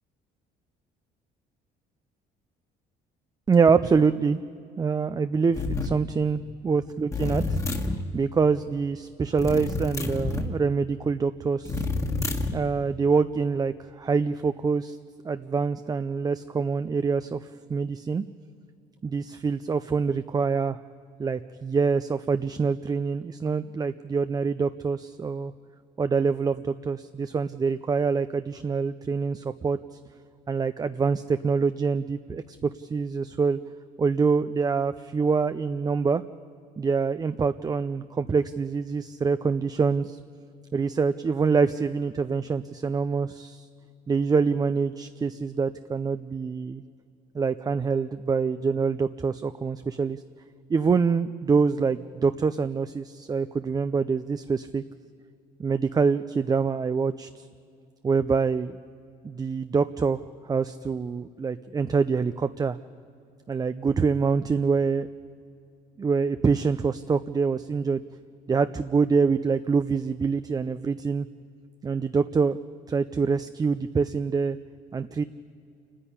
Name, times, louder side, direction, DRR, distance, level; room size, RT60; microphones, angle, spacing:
voice 1, 3.5-4.4 4.8-7.6 8.1-11.9 12.5-15.0 15.2-17.4 17.7-18.2 19.0-20.8 21.2-25.5 26.0-29.8 30.5-33.6 34.0-36.2 36.8-40.2 40.7-43.7 44.1-46.8 47.3-50.2 50.7-54.8 55.6-57.4 58.0-58.8 59.2-62.8 63.5-65.1 66.0-68.0 68.5-71.3 71.8-72.6 72.9-74.6 74.9-75.2, right 5 dB, 20° right, 11 dB, 0.5 m, -25 dB
sound 1, 5.5-6.0 7.1-8.0 9.4-10.5 11.7-12.6, left 2 dB, 15° left, 1.6 m, -28 dB
28.0 x 10.0 x 9.9 m, 2.4 s
cardioid pair, 110°, 17 cm